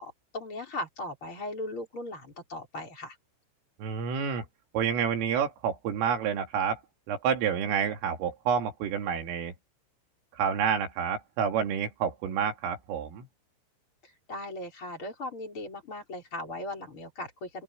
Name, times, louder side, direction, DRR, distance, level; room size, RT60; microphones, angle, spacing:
voice 1, 0.0-3.2 14.0-17.6, left 1 dB, 25° left, 5.8 m, -38 dB
voice 2, 3.8-4.5 4.7-6.8 7.1-9.5 10.4-13.3, right 7 dB, 80° right, 5.4 m, -29 dB
open air
omnidirectional pair, 5.8 m